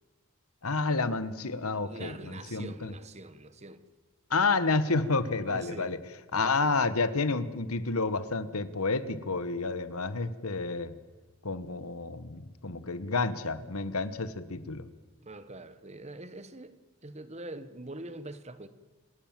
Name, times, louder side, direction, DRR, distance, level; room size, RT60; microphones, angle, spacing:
voice 1, 0.6-2.9 4.3-6.0 6.3-10.9 11.4-14.8, left 3 dB, 75° left, 1.4 m, -30 dB
voice 2, 1.8-3.8 5.5-5.9 15.2-16.8 17.0-18.7, right 2 dB, 30° right, 1.2 m, -44 dB
28.5 x 18.0 x 7.6 m
head